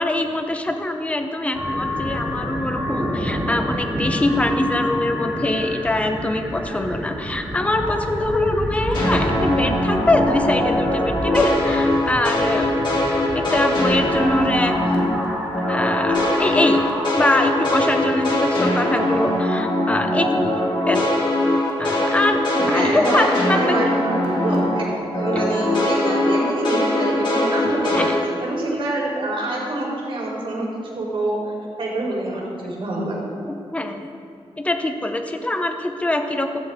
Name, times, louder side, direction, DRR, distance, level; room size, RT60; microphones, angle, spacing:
voice 1, 0.0-12.7 13.3-14.7 15.7-16.9 17.1-20.5 20.9-21.1 21.8-23.8 25.3-25.4 27.7-28.1 33.7-34.1 34.6-36.6, left 1 dB, 15° left, 5 dB, 0.9 m, -23 dB
sound 1, 1.5-17.6, equal, 10° right, 2.9 m, -29 dB
sound 2, 8.9-15.3 15.5-24.9 25.1-28.2, left 1 dB, 45° left, 2.7 m, -21 dB
voice 2, 22.5-30.7 31.0-31.4 31.8-33.2, right 2 dB, 60° right, -3 dB, 4.1 m, -26 dB
15.5 x 15.0 x 3.7 m, 2.3 s
wide cardioid pair, 170°, 10 cm